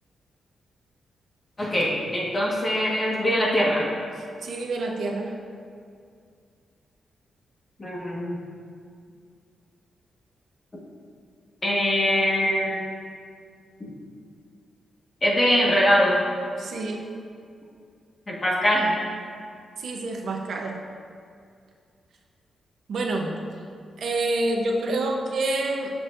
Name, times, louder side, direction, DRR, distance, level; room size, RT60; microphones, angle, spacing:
voice 1, 1.6-3.8 7.8-8.4 11.6-12.9 15.2-16.2 18.3-18.9, equal, 25° left, -4 dB, 1.5 m, -22 dB
voice 2, 4.2-5.3 16.6-17.1 19.8-20.8 22.9-23.3 24.0-25.9, right 2 dB, 65° right, 1 dB, 0.8 m, -27 dB
12.5 x 6.3 x 2.6 m, 2.3 s
wide cardioid pair, 145°, 0 cm